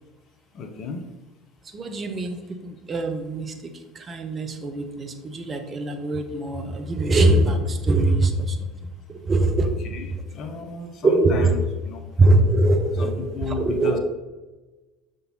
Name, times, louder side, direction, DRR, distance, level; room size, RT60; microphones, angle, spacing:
voice 1, 0.5-1.1 9.6-12.2 13.0-14.0, left 5 dB, 50° left, 6 dB, 0.9 m, -34 dB
voice 2, 1.7-8.6 9.1-9.7 11.0-11.5 12.2-14.0, right 2 dB, 35° right, 6 dB, 0.9 m, -22 dB
6.8 x 3.9 x 3.9 m, 1.2 s
hypercardioid pair, 70°, 0 cm